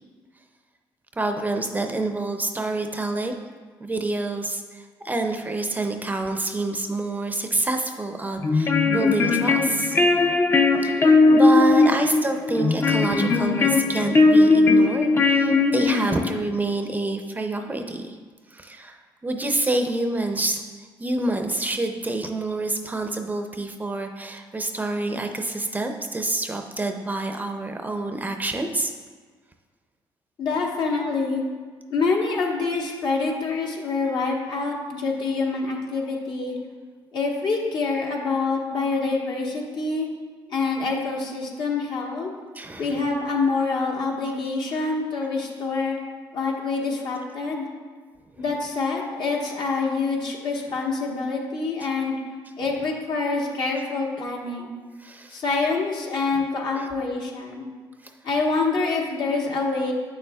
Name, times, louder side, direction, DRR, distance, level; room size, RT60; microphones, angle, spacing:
voice 1, 1.2-3.3 3.8-10.0 10.7-18.2 18.5-20.6 21.0-28.9 42.5-43.0 44.8-44.9 55.0-55.4 56.8-56.9, right 2 dB, 20° right, 5 dB, 0.5 m, -27 dB
sound 1, 8.4-16.4, left 3 dB, 30° left, 0.5 m, -19 dB
voice 2, 30.4-31.4 31.9-36.5 37.1-40.1 40.5-42.3 42.8-46.0 46.3-47.7 48.4-52.2 52.6-54.7 55.3-57.7 58.2-59.9, left 4 dB, 60° left, -1 dB, 1.3 m, -26 dB
8.1 x 6.8 x 2.3 m, 1.5 s
cardioid pair, 90°, 9 cm